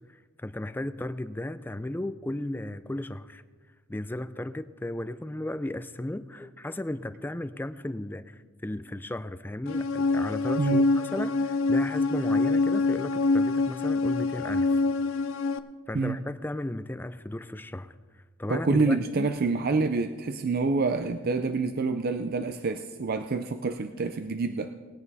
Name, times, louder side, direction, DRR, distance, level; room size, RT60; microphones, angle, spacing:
voice 1, 0.1-3.4 3.9-14.8 15.9-17.9 18.4-19.3, left 1 dB, 10° left, 12 dB, 0.4 m, -35 dB
sound 1, 9.7-15.6, left 3 dB, 75° left, 0.5 m, -25 dB
voice 2, 18.5-24.7, right 3 dB, 50° right, 8 dB, 0.5 m, -27 dB
19.5 x 9.0 x 4.1 m, 1.4 s
head